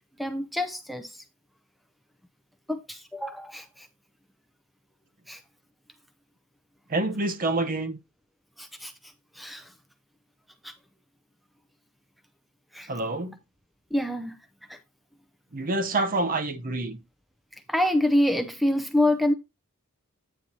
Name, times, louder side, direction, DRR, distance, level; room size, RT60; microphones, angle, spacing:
voice 1, 0.2-1.2 2.7-3.9 5.3-5.4 8.6-9.7 10.6-10.7 12.7-12.9 13.9-14.4 14.7-14.8 17.7-19.3, left 1 dB, ahead, 0.6 m, -27 dB
voice 2, 6.9-8.0 12.9-13.4 15.5-17.0, right 2 dB, 40° right, 0.8 m, -27 dB
9.2 x 4.3 x 4.1 m
head